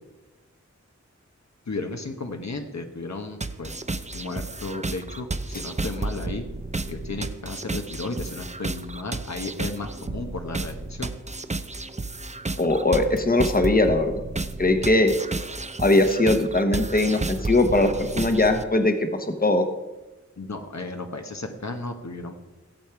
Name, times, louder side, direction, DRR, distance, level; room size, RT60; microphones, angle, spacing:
voice 1, 1.7-3.7 4.1-6.5 6.9-11.1 20.4-22.4, left 3 dB, 65° left, 5 dB, 1.2 m, -34 dB
sound 1, 3.4-18.6, right 2 dB, 25° right, 0.6 m, -32 dB
voice 2, 12.6-14.1 14.6-15.1 15.8-19.6, left 2 dB, 30° left, 7 dB, 1.1 m, -20 dB
16.5 x 7.3 x 4.7 m, 1.1 s
wide cardioid pair, 60°, 29 cm